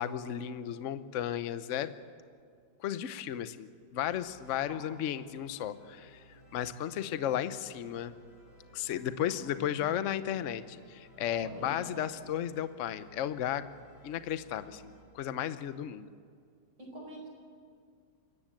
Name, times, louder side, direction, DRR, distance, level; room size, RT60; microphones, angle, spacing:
voice 1, 0.0-1.9 2.8-6.2 6.5-8.1 8.7-13.7 14.0-16.1, left 10 dB, 55° left, 12 dB, 0.9 m, -34 dB
sound 1, 4.0-15.0, equal, 75° left, 6.8 m, -58 dB
voice 2, 9.3-9.9 11.4-12.0 16.8-17.3, right 1 dB, 70° right, 1 dB, 5.5 m, -46 dB
25.5 x 14.5 x 9.0 m, 2.2 s
omnidirectional pair, 2.0 m